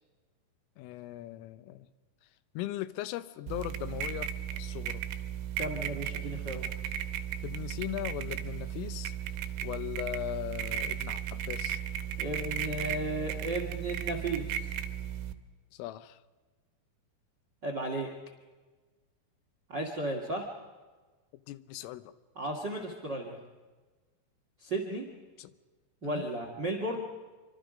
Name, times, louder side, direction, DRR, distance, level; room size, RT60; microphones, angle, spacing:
voice 1, 0.8-1.9 2.5-4.3 4.6-5.0 7.4-9.1 9.6-11.8 15.7-16.2 21.5-22.1 25.4-25.5 26.0-26.2, left 15 dB, 85° left, 13 dB, 3.4 m, -39 dB
sound 1, 3.5-15.3, right 9 dB, 75° right, 3.2 m, -35 dB
voice 2, 5.6-6.6 12.2-14.7 17.6-18.1 19.7-20.5 22.3-23.4 24.6-25.0 26.0-27.1, right 1 dB, 50° right, 3 dB, 1.3 m, -34 dB
27.0 x 25.0 x 5.1 m, 1.3 s
omnidirectional pair, 5.8 m